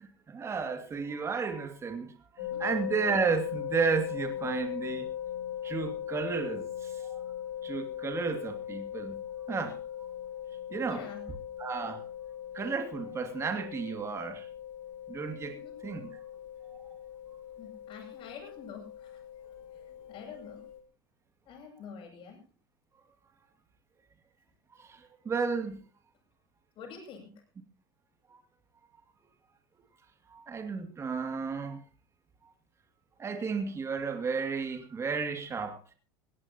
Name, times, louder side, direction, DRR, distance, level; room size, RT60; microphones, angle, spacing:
voice 1, 0.0-5.1 5.6-7.2 7.6-9.2 9.5-10.1 10.7-11.0 11.6-12.0 12.5-14.5 15.1-15.5 15.8-16.0 24.8-25.8 30.3-31.8 33.2-35.9, right 5 dB, 25° right, 2.6 m, -33 dB
sound 1, 2.4-20.8, left 10 dB, 80° left, 3.3 m, -40 dB
voice 2, 10.9-11.3 15.5-15.8 17.6-20.7 21.4-22.4 26.7-27.4, left 6 dB, 45° left, 7.9 m, -48 dB
20.0 x 17.5 x 3.0 m
supercardioid pair, 115°, 12 cm